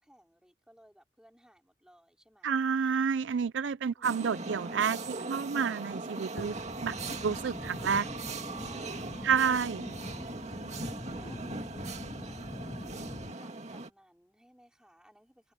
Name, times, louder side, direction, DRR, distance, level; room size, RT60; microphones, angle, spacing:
voice 1, 0.0-2.7 7.7-12.6 13.3-15.5, equal, 5° right, 3.8 m, -61 dB
voice 2, 2.4-6.6 6.8-7.0 7.2-8.0 9.2-9.8, right 6 dB, 70° right, 0.4 m, -29 dB
sound 1, 4.0-13.9, right 3 dB, 35° right, 2.2 m, -40 dB
sound 2, 6.4-13.3, left 1 dB, 20° left, 0.7 m, -43 dB
head